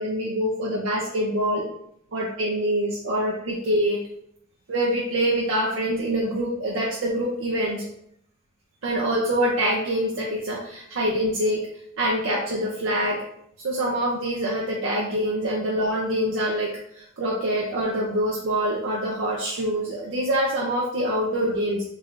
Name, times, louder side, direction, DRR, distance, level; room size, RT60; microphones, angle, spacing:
voice 1, 0.0-1.7 2.1-4.1 4.7-7.9 8.8-11.7 12.0-13.2 13.6-21.9, equal, 85° right, -3 dB, 0.6 m, -25 dB
3.5 x 3.2 x 2.4 m, 0.73 s
head